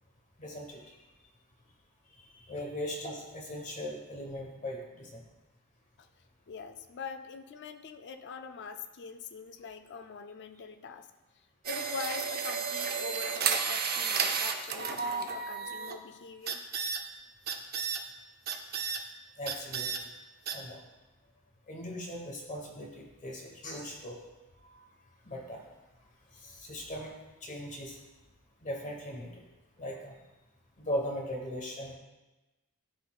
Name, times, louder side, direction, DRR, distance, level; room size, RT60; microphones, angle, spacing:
voice 1, 0.4-0.8 2.2-5.2 19.4-19.9 20.5-20.8 21.7-24.2 24.7-24.8 25.2-25.6 26.4-27.1 27.4-28.0 28.6-29.4 29.8-30.1 30.8-31.9, equal, 35° left, 0 dB, 1.1 m, -39 dB
voice 2, 6.5-11.1 11.7-16.6 26.4-26.5, left 5 dB, 55° left, 8 dB, 0.4 m, -43 dB
sound 1, 11.6-16.0 16.5-17.0 17.5-18.0 18.5-19.0 19.5-20.0 20.5-20.6, right 6 dB, 45° right, 0.5 m, -32 dB
12.0 x 4.1 x 2.3 m, 1.1 s
head